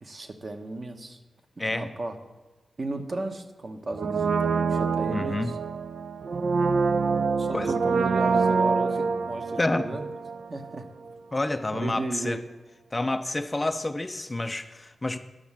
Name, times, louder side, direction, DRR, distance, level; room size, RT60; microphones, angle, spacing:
voice 1, 0.0-1.2 1.7-2.2 2.8-5.6 7.4-10.1 10.5-10.9 11.7-12.4, right 2 dB, 40° right, 5 dB, 1.0 m, -34 dB
Brass instrument, 3.9-10.8 11.0-11.1, right 4 dB, 70° right, 0.4 m, -26 dB
voice 2, 5.1-5.5 7.5-7.7 9.6-9.9 11.3-12.4 12.9-15.2, left 2 dB, 20° left, 8 dB, 0.4 m, -28 dB
10.5 x 6.4 x 7.2 m, 1.2 s
wide cardioid pair, 105°, 0 cm